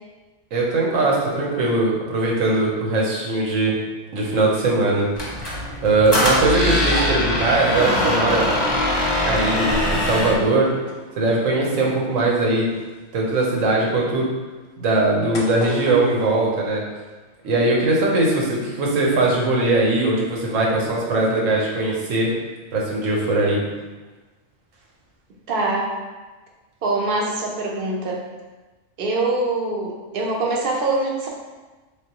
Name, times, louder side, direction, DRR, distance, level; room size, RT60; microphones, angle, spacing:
voice 1, 0.5-3.8 4.1-5.1 5.5-8.4 9.2-10.7 11.2-12.7 13.1-14.2 14.8-16.8 17.4-22.3 22.7-23.6, right 2 dB, 85° right, -2 dB, 1.2 m, -20 dB
sound 1, 4.9-5.7 6.0-6.3 6.7-7.9 8.5-17.2 17.4-18.1 18.4-18.6, left 2 dB, 90° left, 1.1 m, -39 dB
Squeak, 5.2-10.4, left 1 dB, 25° left, 0.7 m, -22 dB
voice 2, 25.5-25.9 26.8-28.2 29.0-31.3, right 2 dB, 55° right, -1 dB, 0.8 m, -23 dB
3.6 x 3.4 x 2.9 m, 1.2 s
omnidirectional pair, 1.3 m